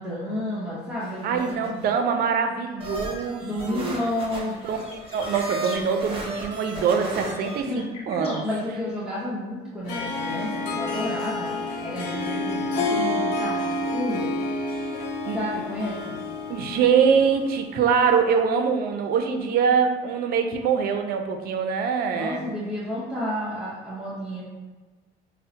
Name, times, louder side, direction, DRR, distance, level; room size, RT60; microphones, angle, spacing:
voice 1, 0.0-1.8 3.4-4.6 7.6-7.9 8.1-11.5 11.8-14.3 15.3-16.2 22.1-24.4, left 1 dB, 5° right, -9 dB, 0.9 m, -31 dB
sound 1, 1.0-2.0 2.8-7.6, right 1 dB, 30° right, 1.0 m, -35 dB
voice 2, 1.2-3.9 4.5-4.8 5.1-8.4 15.3-15.4 16.5-22.4, right 6 dB, 65° right, 6 dB, 0.5 m, -23 dB
sound 2, 3.2-3.3 4.2-5.8 6.9-8.4, left 3 dB, 35° left, 0.7 m, -43 dB
Harp, 9.9-17.6, left 2 dB, 80° left, 0.6 m, -29 dB
5.4 x 2.1 x 2.8 m, 1.3 s
cardioid pair, 110°, 17 cm